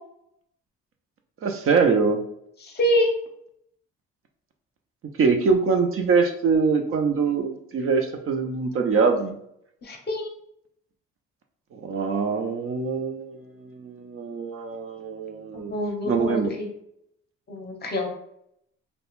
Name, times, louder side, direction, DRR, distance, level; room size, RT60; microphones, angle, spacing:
voice 1, 1.4-2.2 5.2-9.4 11.7-15.7 16.1-16.5, right 5 dB, 45° right, 4 dB, 0.4 m, -23 dB
voice 2, 2.6-3.1 9.8-10.3 15.7-16.7 17.5-18.1, equal, 35° left, 3 dB, 0.6 m, -25 dB
2.3 x 2.1 x 3.0 m, 0.73 s
cardioid pair, 90°, 30 cm